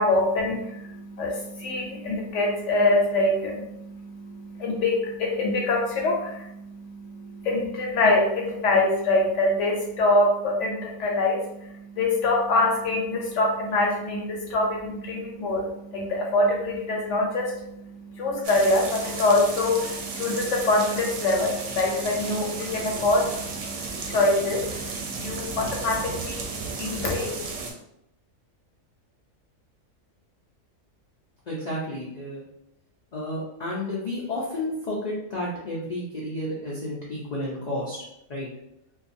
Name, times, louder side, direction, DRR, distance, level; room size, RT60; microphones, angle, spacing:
voice 1, 0.0-27.4, left 2 dB, 70° left, -1 dB, 0.8 m, -25 dB
sound 1, 18.4-27.7, right 4 dB, 70° right, 0.8 m, -34 dB
voice 2, 31.5-32.4 33.1-38.0 38.3-38.5, left 1 dB, 85° left, -5 dB, 0.3 m, -31 dB
2.6 x 2.3 x 2.5 m, 0.79 s
omnidirectional pair, 1.4 m